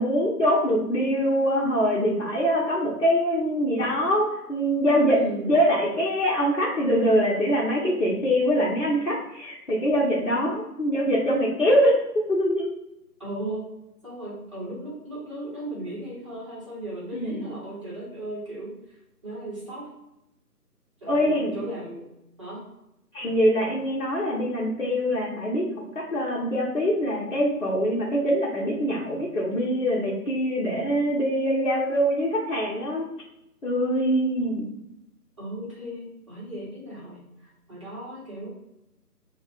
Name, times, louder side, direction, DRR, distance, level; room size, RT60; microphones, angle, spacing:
voice 1, 0.0-5.2 5.4-12.7 17.1-17.4 21.1-21.6 23.1-25.7 25.9-33.1 33.6-34.7, equal, 55° left, -5 dB, 0.9 m, -23 dB
voice 2, 5.2-5.5 13.2-13.6 14.0-18.7 19.2-19.9 21.0-22.1 22.4-22.6 35.4-38.5, right 1 dB, 20° right, -9 dB, 1.1 m, -36 dB
4.2 x 2.4 x 2.3 m, 0.85 s
figure-of-eight pair, 155°, 48 cm